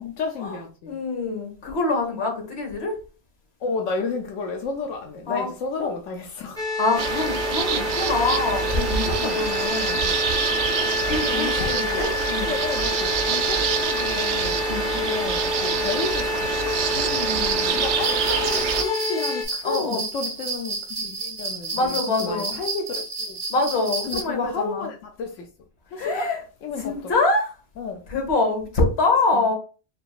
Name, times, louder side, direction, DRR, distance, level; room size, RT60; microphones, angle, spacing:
voice 1, 0.0-0.9 3.6-6.6 9.2-9.4 11.3-12.0 12.4-14.7 14.9-16.8 17.7-23.4 24.1-25.5 25.9-26.3 26.6-27.1 27.8-28.0 29.3-29.5, left 4 dB, 85° left, 1.0 m, -32 dB
voice 2, 0.9-2.9 5.3-5.5 5.8-5.9 6.8-10.1 11.1-12.5 14.7-14.9 16.9-17.8 19.6-20.0 21.7-22.5 23.5-24.9 26.0-26.4 26.7-27.5 28.1-29.6, left 3 dB, 60° left, 1.4 m, -25 dB
sound 1, 6.6-19.4, left 3 dB, 5° left, 0.6 m, -28 dB
sound 2, 7.0-18.8, right 7 dB, 70° right, 0.8 m, -26 dB
sound 3, 18.0-24.2, right 3 dB, 40° right, 0.9 m, -31 dB
4.9 x 2.9 x 2.4 m
omnidirectional pair, 1.3 m